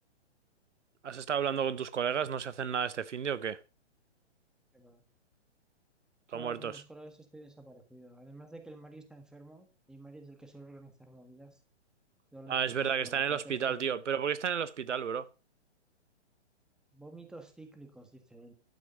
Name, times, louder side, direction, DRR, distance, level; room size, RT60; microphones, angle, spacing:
voice 1, 1.0-3.6 6.3-6.7 12.5-15.3, right 7 dB, 85° right, 0.8 m, -32 dB
voice 2, 6.3-11.6 12.3-13.9 16.9-18.5, right 2 dB, ahead, 1.4 m, -50 dB
12.0 x 6.2 x 5.1 m
hypercardioid pair, 135°, 35 cm